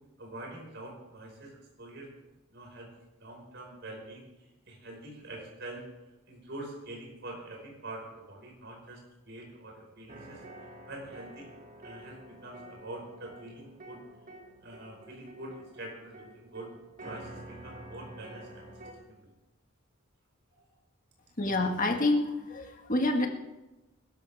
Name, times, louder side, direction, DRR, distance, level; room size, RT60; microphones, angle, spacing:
voice 1, 0.2-2.1 2.5-2.9 3.2-4.3 4.7-5.8 6.3-10.4 10.8-11.5 11.8-14.0 14.6-16.7 17.0-18.7 19.0-19.3 20.5-20.6, right 2 dB, 55° right, -1 dB, 5.3 m, -45 dB
sound 1, 10.1-18.9, right 1 dB, 40° right, 2.1 m, -49 dB
voice 2, 21.4-23.3, left 2 dB, 40° left, 3 dB, 1.8 m, -27 dB
21.0 x 13.0 x 3.5 m, 1.0 s
head